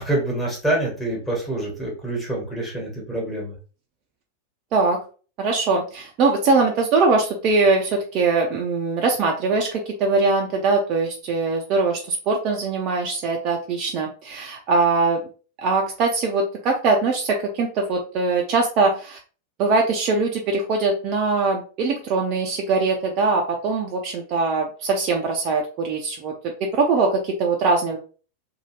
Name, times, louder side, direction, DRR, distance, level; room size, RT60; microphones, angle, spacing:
voice 1, 0.0-3.6, right 1 dB, 5° left, -3 dB, 1.3 m, -26 dB
voice 2, 5.4-15.2 15.6-19.2 19.6-26.3 26.6-28.0, right 3 dB, 40° right, 1 dB, 0.4 m, -22 dB
2.7 x 2.3 x 3.0 m, 0.38 s
figure-of-eight pair, 90°, 0 cm